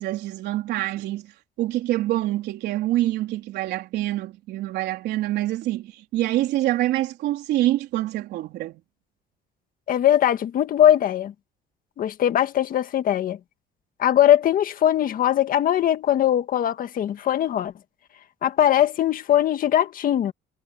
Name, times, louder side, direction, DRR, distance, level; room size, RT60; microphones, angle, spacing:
voice 1, 0.0-1.3 1.6-8.8, right 15 dB, 80° right, 4.0 m, -26 dB
voice 2, 9.9-11.3 12.0-13.4 14.0-17.7 18.4-20.3, left 11 dB, 55° left, 1.7 m, -20 dB
cardioid pair, 110°, 17 cm